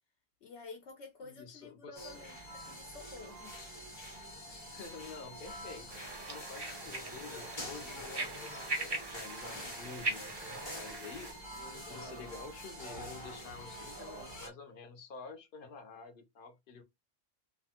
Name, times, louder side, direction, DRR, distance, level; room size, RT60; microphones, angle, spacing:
voice 1, 0.4-3.5, left 4 dB, 80° left, 1.0 m, -50 dB
voice 2, 1.2-2.3 4.7-5.9 6.2-16.8, left 5 dB, 55° left, 0.7 m, -49 dB
sound 1, 1.9-14.5, equal, 25° left, 0.8 m, -46 dB
sound 2, 5.9-11.3, right 2 dB, 35° right, 0.4 m, -40 dB
2.7 x 2.1 x 2.8 m
omnidirectional pair, 1.2 m